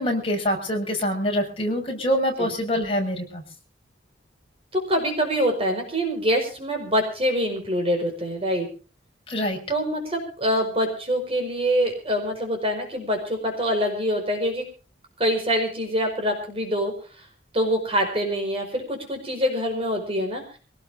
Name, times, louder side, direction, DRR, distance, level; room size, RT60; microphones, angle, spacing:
voice 1, 0.0-3.4 9.3-9.6, equal, 30° left, 1 dB, 6.3 m, -25 dB
voice 2, 4.7-8.7 9.7-14.6 15.2-16.9 17.5-20.4, equal, 30° right, 4 dB, 5.2 m, -25 dB
25.0 x 18.5 x 2.7 m, 0.37 s
head